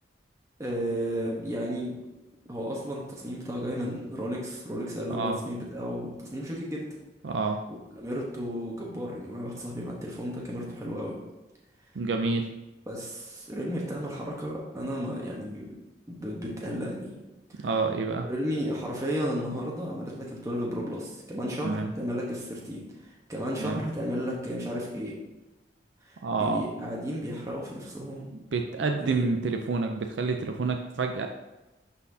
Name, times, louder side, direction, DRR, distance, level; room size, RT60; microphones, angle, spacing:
voice 1, 0.6-2.0 2.5-6.9 7.7-11.2 12.9-15.7 16.1-17.1 17.5-17.7 18.3-25.2 26.0-28.3 28.8-29.3, equal, 20° right, -4 dB, 1.1 m, -33 dB
voice 2, 7.2-7.6 12.0-12.5 17.6-18.3 21.6-21.9 23.6-23.8 26.2-26.6 28.5-31.3, right 4 dB, 80° right, 4 dB, 0.5 m, -28 dB
11.0 x 4.2 x 2.7 m, 1.0 s
head